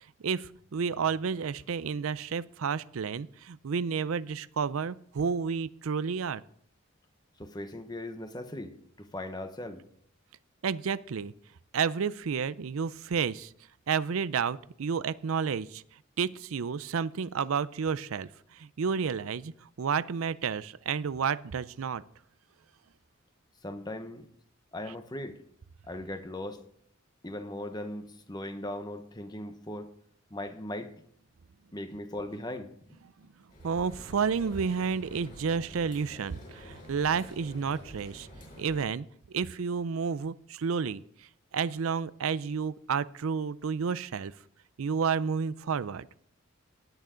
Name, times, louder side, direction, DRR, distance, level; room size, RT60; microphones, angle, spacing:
voice 1, 0.2-6.4 10.6-11.3 11.7-13.5 13.9-15.8 16.2-22.0 33.6-38.3 38.6-41.0 41.5-44.3 44.8-46.1, right 6 dB, 85° right, 17 dB, 0.5 m, -31 dB
voice 2, 7.4-9.8 23.6-24.3 24.7-25.4 25.8-26.6 27.2-29.9 30.3-31.0 31.7-33.0, left 1 dB, 20° left, 8 dB, 1.0 m, -39 dB
sound 1, 33.5-38.9, equal, 40° left, 6.8 m, -48 dB
18.5 x 9.1 x 3.8 m, 0.63 s
head